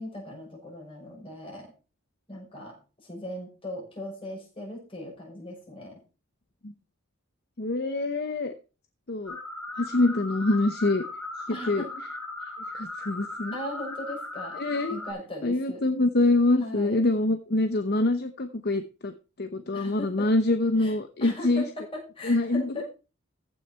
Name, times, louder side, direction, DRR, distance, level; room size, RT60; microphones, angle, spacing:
voice 1, 0.0-1.7 2.3-6.0 11.5-12.0 12.4-12.5 13.5-14.6 14.9-15.8 16.6-17.0 19.7-20.3 20.8-22.9, left 1 dB, 25° left, -2 dB, 6.2 m, -39 dB
voice 2, 7.6-8.5 9.1-9.4 9.7-11.0 11.7-11.8 12.7-13.5 14.5-15.0 15.4-19.1 19.4-21.6 22.2-22.9, left 2 dB, 50° left, 8 dB, 0.8 m, -25 dB
sound 1, 9.3-15.1, left 2 dB, 5° left, 4.3 m, -38 dB
15.0 x 6.4 x 4.4 m, 0.33 s
head